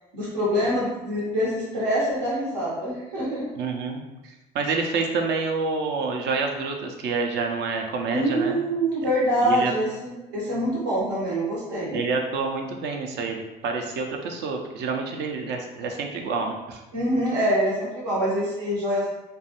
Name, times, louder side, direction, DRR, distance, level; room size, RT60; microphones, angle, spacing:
voice 1, 0.1-3.4 8.1-12.0 16.9-19.2, equal, 80° right, -7 dB, 0.8 m, -25 dB
voice 2, 3.5-8.6 9.4-9.7 11.9-16.8, right 4 dB, 55° right, 2 dB, 0.5 m, -28 dB
2.3 x 2.2 x 2.8 m, 1.0 s
hypercardioid pair, 60°, 21 cm